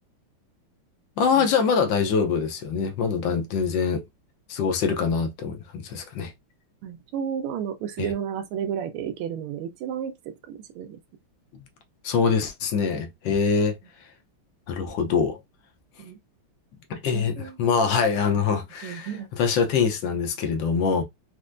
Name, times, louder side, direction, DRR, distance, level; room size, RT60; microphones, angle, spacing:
voice 1, 1.2-4.0 4.5-6.3 8.0-8.1 12.0-13.8 14.7-15.4 16.9-21.0, left 6 dB, 70° left, 1.2 m, -24 dB
voice 2, 6.8-11.0 16.0-16.2 17.1-17.6 18.3-19.3, right 8 dB, 85° right, 1.5 m, -33 dB
4.4 x 2.0 x 2.5 m
omnidirectional pair, 2.4 m